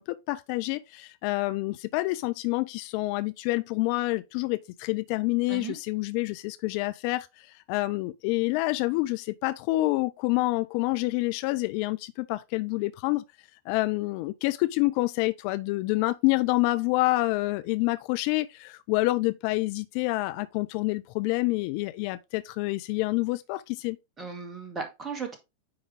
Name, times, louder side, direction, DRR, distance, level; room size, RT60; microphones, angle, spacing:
voice 1, 0.0-13.2 13.7-24.0, left 21 dB, 45° left, 0.4 m, -27 dB
voice 2, 24.2-25.4, right 5 dB, 20° right, 2.1 m, -36 dB
9.6 x 3.6 x 3.5 m
figure-of-eight pair, 90°, 0 cm